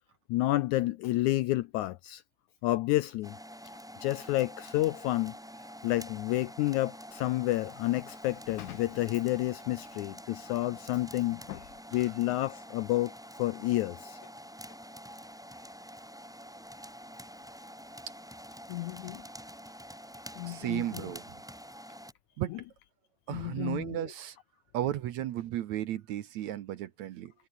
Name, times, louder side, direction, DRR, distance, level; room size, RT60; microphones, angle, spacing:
voice 1, 0.3-2.2 2.6-3.4 4.0-5.4 5.8-11.7 11.9-13.1 13.4-14.2 18.7-19.2 20.4-21.1 22.5-22.6 23.3-24.0, left 16 dB, 80° left, 1.8 m, -30 dB
sound 1, 3.2-22.1, equal, ahead, 4.1 m, -47 dB
voice 2, 20.4-21.3 22.4-22.5 23.3-24.4 24.7-27.3, right 12 dB, 70° right, 2.0 m, -34 dB
omnidirectional pair, 4.0 m